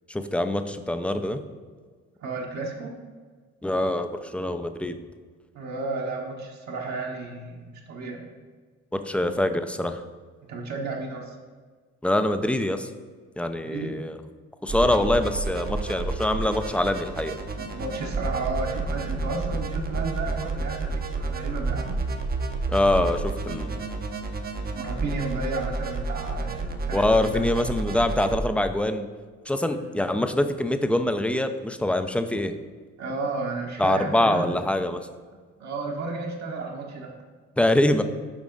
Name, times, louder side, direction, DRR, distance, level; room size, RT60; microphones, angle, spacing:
voice 1, 0.1-1.4 3.6-5.0 9.0-10.0 12.0-12.9 13.4-14.2 14.6-17.4 22.7-23.8 26.9-29.1 29.5-32.5 33.8-35.0 37.6-38.0, left 1 dB, 5° left, 8 dB, 0.4 m, -24 dB
voice 2, 2.2-2.9 5.5-7.6 7.9-8.2 10.5-11.3 13.6-13.9 17.5-22.0 24.7-27.6 29.7-29.8 33.0-34.6 35.6-37.1, right 3 dB, 65° right, -1 dB, 1.2 m, -32 dB
sound 1, 14.7-28.4, right 3 dB, 30° right, 0.7 m, -30 dB
7.4 x 4.8 x 3.8 m, 1.5 s
cardioid pair, 90°, 30 cm